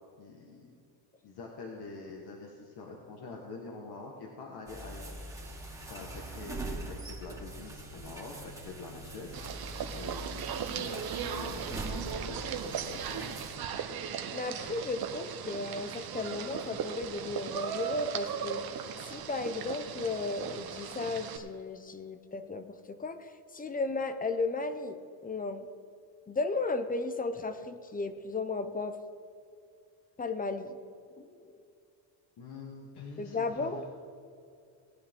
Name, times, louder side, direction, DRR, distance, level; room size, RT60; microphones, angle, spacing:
voice 1, 0.2-0.7 1.2-5.2 5.8-13.4 32.4-33.7, left 3 dB, 55° left, 0 dB, 1.6 m, -45 dB
sound 1, 4.7-13.6, right 2 dB, 5° right, 2.3 m, -42 dB
sound 2, 9.3-21.4, right 8 dB, 50° right, 1.0 m, -38 dB
voice 2, 14.3-18.6 19.1-25.7 26.3-29.0 30.2-30.8 31.2-31.5 33.2-33.8, left 3 dB, 20° left, 10 dB, 0.6 m, -35 dB
18.5 x 9.8 x 3.7 m, 2.4 s
cardioid pair, 130°, 47 cm